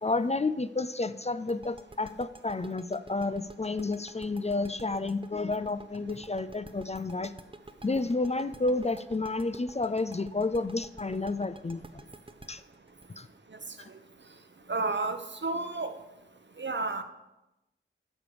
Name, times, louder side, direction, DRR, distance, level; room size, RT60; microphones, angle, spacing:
voice 1, 0.0-7.3 7.8-12.0 12.5-12.6 13.1-13.3 13.8-13.9, left 3 dB, 30° left, 13 dB, 0.4 m, -31 dB
sound 1, 1.5-14.2, right 2 dB, 25° right, 0.6 m, -49 dB
voice 2, 14.7-16.0 16.6-17.0, right 3 dB, 60° right, 8 dB, 0.9 m, -31 dB
11.0 x 5.0 x 6.9 m, 0.95 s
wide cardioid pair, 50°, 21 cm